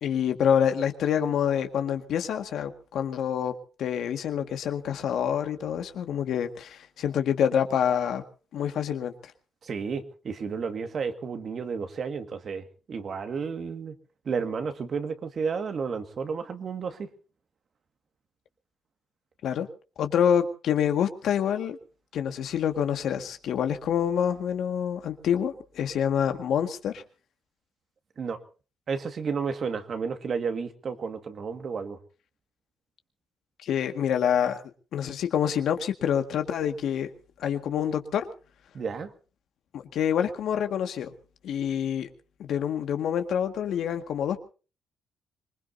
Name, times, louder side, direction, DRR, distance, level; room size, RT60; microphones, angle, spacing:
voice 1, 0.0-3.5 3.8-8.2 8.5-9.1 19.4-19.7 20.0-21.8 22.1-27.0 33.6-34.6 34.9-37.1 37.4-38.3 39.7-41.1 41.4-42.1 42.4-44.4, left 8 dB, 75° left, 7 dB, 1.9 m, -27 dB
voice 2, 9.6-13.9 14.3-17.1 28.2-28.4 28.9-32.0 38.7-39.1, right 5 dB, 50° right, 8 dB, 2.0 m, -32 dB
25.5 x 20.0 x 2.8 m, 0.36 s
cardioid pair, 90°, 0 cm